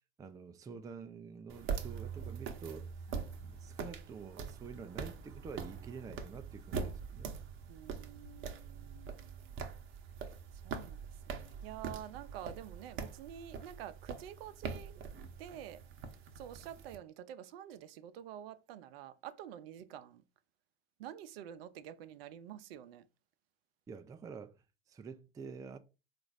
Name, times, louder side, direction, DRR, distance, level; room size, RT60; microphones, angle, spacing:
voice 1, 0.2-2.9 3.4-7.4 23.9-25.8, right 5 dB, 10° right, 0.4 m, -48 dB
sound 1, 1.5-17.0, right 6 dB, 40° right, 0.8 m, -43 dB
voice 2, 1.6-2.0 3.1-3.3 7.7-9.6 10.5-15.0 15.4-15.8 16.4-20.2 21.0-23.1, right 10 dB, 65° right, 0.6 m, -49 dB
3.9 x 2.5 x 4.7 m
hypercardioid pair, 80°, 31 cm